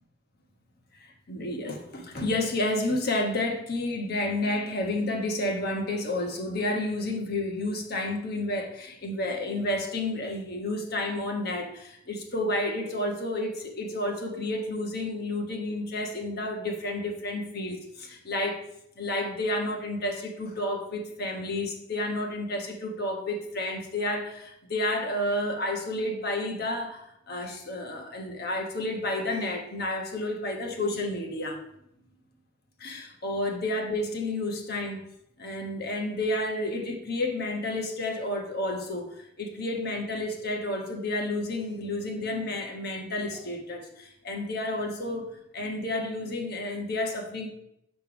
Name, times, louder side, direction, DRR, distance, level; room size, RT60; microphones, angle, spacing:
voice 1, 1.3-18.6 19.0-27.0 27.3-31.6 32.8-35.0 35.4-39.1 39.4-45.3 45.5-47.5, left 1 dB, 50° left, 2 dB, 1.2 m, -30 dB
6.8 x 3.4 x 6.0 m, 0.77 s
head